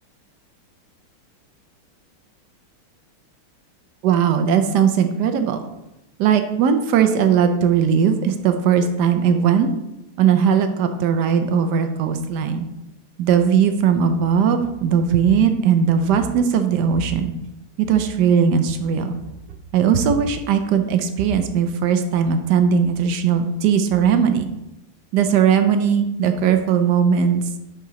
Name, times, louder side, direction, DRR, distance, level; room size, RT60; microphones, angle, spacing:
voice 1, 4.0-5.6 6.2-9.7 10.2-12.7 13.2-17.3 17.8-19.2 19.7-24.5 25.1-27.4, right 7 dB, 70° right, 7 dB, 1.0 m, -18 dB
10.5 x 4.7 x 3.0 m, 0.92 s
omnidirectional pair, 2.4 m